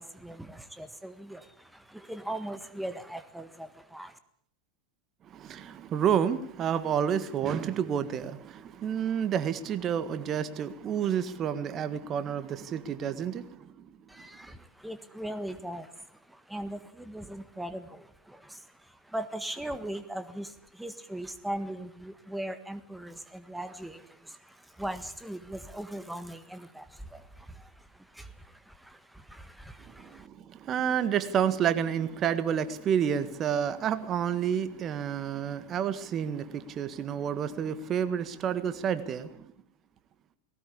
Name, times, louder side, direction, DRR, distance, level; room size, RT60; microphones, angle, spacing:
voice 1, 0.0-4.2 14.1-30.3, right 1 dB, 5° right, 1.6 m, -40 dB
voice 2, 5.3-13.9 29.9-39.4, right 8 dB, 35° right, 1.6 m, -30 dB
19.5 x 18.0 x 8.5 m
figure-of-eight pair, 90°, 0 cm